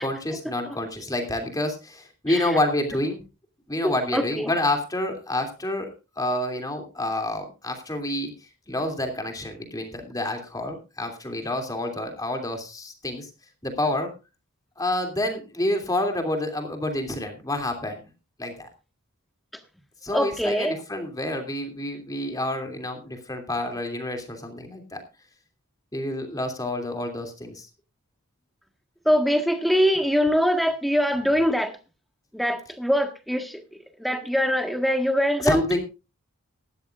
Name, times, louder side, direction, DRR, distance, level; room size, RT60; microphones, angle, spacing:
voice 1, 0.0-3.2 3.7-5.9 6.2-8.3 8.7-13.3 13.6-14.1 14.8-18.0 18.4-18.7 20.0-25.0 25.9-27.7 35.4-35.8, left 1 dB, 15° left, 5 dB, 2.9 m, -28 dB
voice 2, 3.8-4.5 20.1-20.7 29.0-31.7 32.3-33.6 34.0-35.6, equal, ahead, 6 dB, 1.6 m, -23 dB
18.0 x 13.0 x 2.5 m, 0.29 s
head